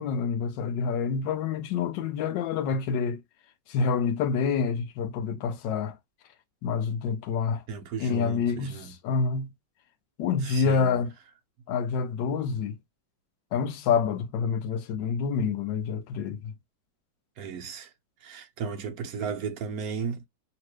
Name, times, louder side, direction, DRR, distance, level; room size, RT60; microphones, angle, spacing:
voice 1, 0.0-3.2 3.7-6.0 6.6-7.6 8.0-9.5 10.2-11.1 11.7-12.8 13.5-16.5, left 6 dB, 80° left, 1.3 m, -27 dB
voice 2, 7.7-8.9 10.4-11.0 17.4-17.9 18.2-20.3, right 6 dB, 65° right, 1.0 m, -35 dB
3.0 x 2.9 x 3.1 m
omnidirectional pair, 2.0 m